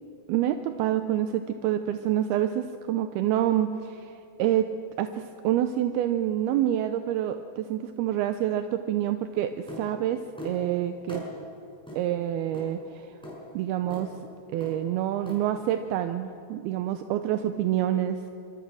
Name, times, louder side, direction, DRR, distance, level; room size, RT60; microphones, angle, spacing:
voice 1, 0.3-4.7 5.0-11.2 12.0-13.1 13.5-14.1 14.5-18.3, right 11 dB, 80° right, 8 dB, 2.6 m, -27 dB
sound 1, 9.7-9.9 10.4-10.6 11.1-11.3 11.9-12.0 12.5-12.7 13.2-13.4 13.9-14.1 14.6-14.8 15.3-15.4, left 1 dB, ahead, 5.6 m, -39 dB
26.0 x 23.5 x 6.3 m, 2.8 s
omnidirectional pair, 4.7 m